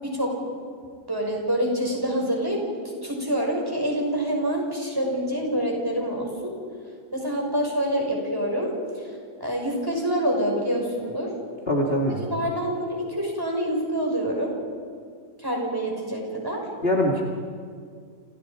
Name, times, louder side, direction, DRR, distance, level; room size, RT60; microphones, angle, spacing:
voice 1, 0.0-0.3 1.1-2.6 3.0-6.5 7.1-9.1 9.4-11.3 12.1-14.5 15.4-16.7, equal, 15° right, -1 dB, 5.8 m, -26 dB
voice 2, 11.7-12.2 16.8-17.2, left 1 dB, 40° left, -1 dB, 2.7 m, -22 dB
30.0 x 28.0 x 5.1 m, 2.1 s
omnidirectional pair, 1.7 m